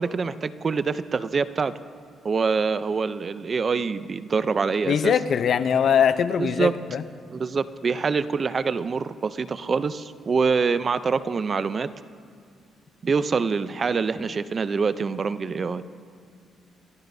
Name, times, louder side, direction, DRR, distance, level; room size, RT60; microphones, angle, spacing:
voice 1, 0.0-1.7 2.2-5.1 6.4-6.7 7.3-11.9 13.0-15.8, right 5 dB, 40° right, 14 dB, 0.5 m, -25 dB
voice 2, 4.9-7.0, left 7 dB, 60° left, 12 dB, 0.7 m, -21 dB
29.0 x 14.0 x 2.7 m, 2.3 s
cardioid pair, 90°, 0 cm